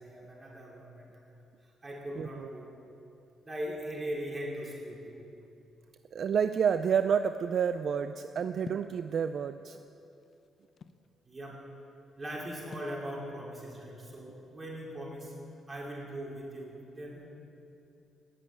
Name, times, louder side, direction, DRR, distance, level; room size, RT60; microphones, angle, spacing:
voice 1, 0.0-2.7 3.4-5.2 11.2-11.6 12.2-15.3 15.7-17.2, equal, 25° right, -3 dB, 4.8 m, -40 dB
voice 2, 2.2-2.5 6.1-9.8, right 7 dB, 55° right, 10 dB, 0.5 m, -29 dB
sound 1, 8.6-9.0 9.9-11.1 12.7-13.0, left 5 dB, 50° left, 0.7 m, -46 dB
18.0 x 7.7 x 9.8 m, 2.8 s
cardioid pair, 90°, 0 cm